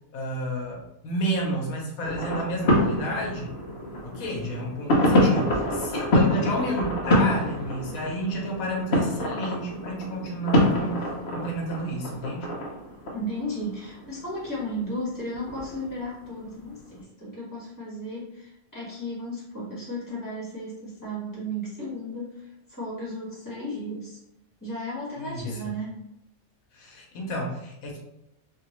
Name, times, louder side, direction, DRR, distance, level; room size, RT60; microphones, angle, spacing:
voice 1, 0.1-3.5 4.0-11.0 11.3-12.5 25.2-25.7 26.7-28.0, equal, 80° left, -1 dB, 1.1 m, -31 dB
sound 1, 2.0-14.6 15.1-15.9 16.6-16.7, left 1 dB, 55° left, 0.8 m, -26 dB
voice 2, 13.1-24.2 24.6-26.0, equal, 15° left, -7 dB, 1.4 m, -34 dB
2.9 x 2.8 x 3.0 m, 0.86 s
omnidirectional pair, 1.5 m